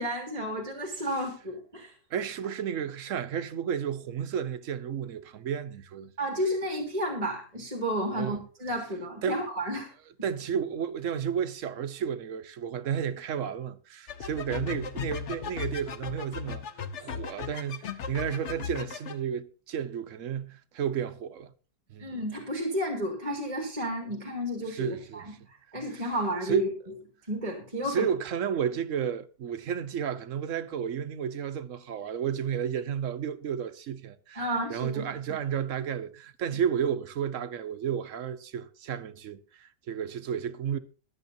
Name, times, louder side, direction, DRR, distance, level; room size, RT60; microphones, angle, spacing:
voice 1, 0.0-1.9 6.2-9.9 22.0-25.2 25.7-26.7 27.3-28.1 34.4-35.0, equal, 20° right, 2.3 m, -32 dB
voice 2, 2.1-6.1 8.2-8.4 9.2-9.4 10.2-16.7 17.0-21.5 21.9-22.1 24.7-25.5 25.9-26.1 26.4-26.7 27.8-40.8, right 8 dB, 55° right, 1.0 m, -32 dB
sound 1, 14.1-19.2, left 7 dB, 50° left, 1.0 m, -37 dB
22.5 x 7.9 x 2.7 m
omnidirectional pair, 1.8 m